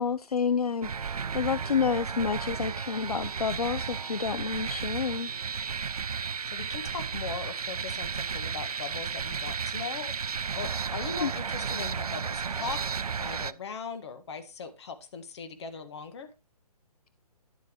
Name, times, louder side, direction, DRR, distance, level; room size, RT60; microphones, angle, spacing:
voice 1, 0.0-5.3 11.2-11.3, left 6 dB, 70° left, 0.6 m, -29 dB
sound 1, 0.8-13.5, right 6 dB, 65° right, 0.5 m, -33 dB
voice 2, 6.5-10.1 10.6-12.8 13.2-16.3, left 5 dB, 45° left, 1.8 m, -39 dB
11.0 x 7.3 x 3.1 m
figure-of-eight pair, 135°, 20 cm